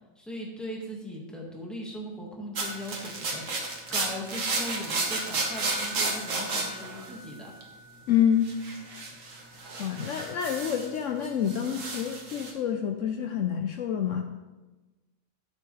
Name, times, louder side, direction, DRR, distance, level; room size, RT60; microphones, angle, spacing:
voice 1, 0.1-3.4 3.9-7.5, equal, ahead, -2 dB, 1.6 m, -39 dB
sound 1, 2.6-7.8 8.4-11.0 11.2-12.5, right 3 dB, 65° right, 1.6 m, -32 dB
voice 2, 8.1-8.5 9.8-14.2, left 9 dB, 65° left, 5 dB, 0.9 m, -27 dB
12.5 x 6.9 x 3.2 m, 1.2 s
omnidirectional pair, 1.5 m